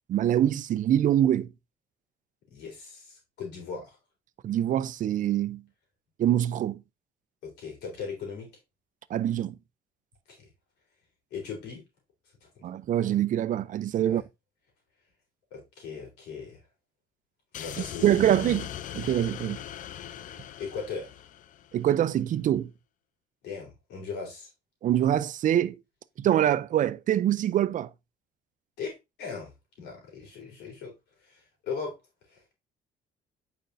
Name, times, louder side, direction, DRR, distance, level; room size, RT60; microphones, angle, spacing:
voice 1, 0.1-1.5 4.4-5.6 6.2-6.8 9.1-9.6 12.6-14.2 18.0-18.7 18.9-19.6 21.7-22.7 24.8-25.8 26.2-27.9, right 11 dB, 50° right, 0.5 m, -24 dB
voice 2, 2.5-4.0 7.4-8.5 10.4-10.5 11.3-11.8 14.1-14.2 15.5-16.6 17.5-18.4 20.6-21.1 23.4-24.5 28.8-28.9 29.2-29.5 29.8-30.9 31.3-32.0 32.3-32.5, left 5 dB, 80° left, 3.7 m, -38 dB
sound 1, 17.5-21.9, left 11 dB, 50° left, 0.5 m, -40 dB
8.9 x 5.2 x 2.6 m
cardioid pair, 110°, 17 cm